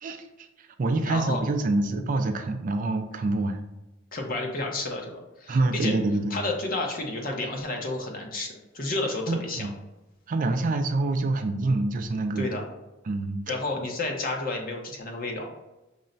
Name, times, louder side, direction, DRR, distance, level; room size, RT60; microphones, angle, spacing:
voice 1, 0.0-3.6 5.5-6.3 9.3-9.7 10.3-12.5 13.1-13.4, right 2 dB, 40° right, 7 dB, 0.4 m, -26 dB
voice 2, 1.0-1.4 4.1-5.9 6.3-9.7 12.4-12.6 13.5-15.5, left 2 dB, 45° left, 1 dB, 0.8 m, -31 dB
5.5 x 2.1 x 3.8 m, 1.0 s
head